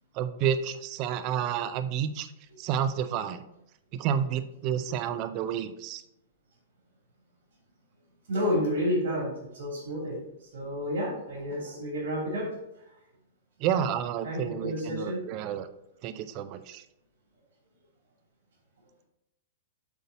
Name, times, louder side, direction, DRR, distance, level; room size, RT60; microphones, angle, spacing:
voice 1, 0.2-2.3 2.6-3.4 3.9-6.0 13.6-15.7 16.0-16.8, right 9 dB, 40° right, 12 dB, 0.5 m, -30 dB
voice 2, 8.3-10.2 10.5-12.5 14.2-15.2, equal, 60° right, -2 dB, 2.7 m, -30 dB
8.1 x 4.0 x 4.0 m, 0.85 s
figure-of-eight pair, 105°, 0 cm